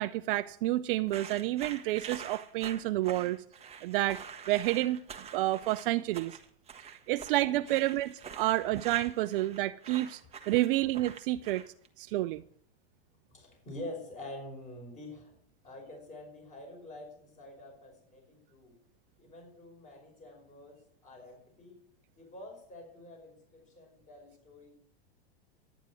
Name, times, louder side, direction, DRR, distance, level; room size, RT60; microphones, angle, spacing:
voice 1, 0.0-3.4 3.8-5.0 5.3-6.4 6.9-10.2 10.5-11.6 12.0-12.4, right 16 dB, 60° right, 0.5 m, -29 dB
sound 1, 1.1-11.9, right 7 dB, 20° right, 1.3 m, -46 dB
voice 2, 13.3-15.4 15.6-18.8 19.2-21.8 22.2-24.7, left 1 dB, 25° left, 5.5 m, -47 dB
11.5 x 9.3 x 6.1 m
hypercardioid pair, 120°, 31 cm